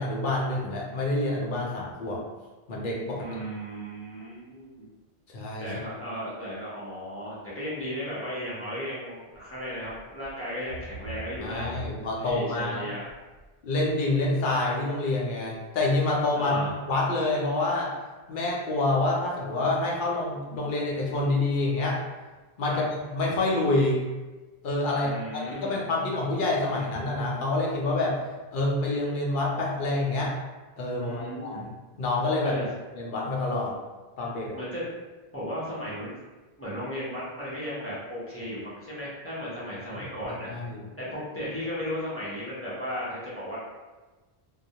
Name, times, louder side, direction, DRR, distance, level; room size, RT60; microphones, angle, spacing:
voice 1, 0.0-2.2 2.7-3.3 5.3-5.7 11.4-12.8 13.6-16.6 16.9-17.9 18.3-22.0 22.6-24.0 24.6-25.1 25.5-28.2 28.5-30.3 30.8-32.6 33.0-33.7 34.2-34.6 40.5-40.8, left 2 dB, 60° left, -3 dB, 0.7 m, -27 dB
voice 2, 3.1-4.9 5.6-13.0 16.3-16.8 22.6-22.8 25.0-25.8 31.0-31.7 32.4-32.7 34.5-34.8 35.3-36.1 36.6-40.5 41.0-43.6, equal, 15° left, -9 dB, 0.6 m, -35 dB
sound 1, 9.3-9.6 9.9-10.3 10.6-12.6 13.1-13.4 13.9-14.0, right 1 dB, 60° right, 0.7 m, -41 dB
2.2 x 2.0 x 2.7 m, 1.2 s
omnidirectional pair, 1.0 m